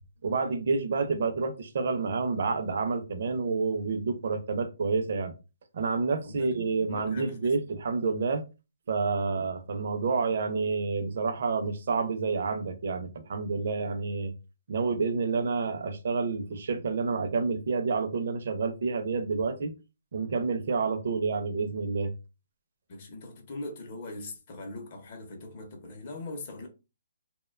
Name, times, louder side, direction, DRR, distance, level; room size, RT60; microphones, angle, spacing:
voice 1, 0.2-5.3 5.7-8.4 8.9-14.3 14.7-19.7 20.1-22.1, right 4 dB, 50° right, 0.4 m, -29 dB
voice 2, 6.2-6.6 6.9-7.5 22.9-26.7, left 2 dB, 35° left, 0.6 m, -40 dB
2.7 x 2.1 x 2.3 m
hypercardioid pair, 170°, 0 cm